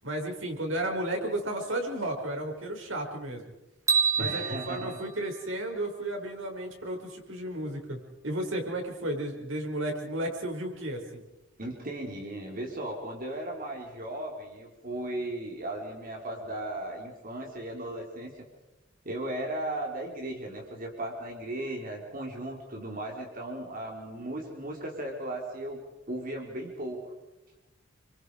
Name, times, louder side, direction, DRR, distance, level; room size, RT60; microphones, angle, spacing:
voice 1, 0.0-3.5 4.2-11.2, right 1 dB, 90° right, 2 dB, 6.0 m, -33 dB
sound 1, 3.9-6.1, right 6 dB, 15° right, 1.7 m, -29 dB
voice 2, 4.2-5.0 11.6-18.3 19.0-25.8 26.1-27.1, right 1 dB, 50° right, 0 dB, 4.2 m, -36 dB
29.0 x 25.0 x 5.0 m, 1.0 s
head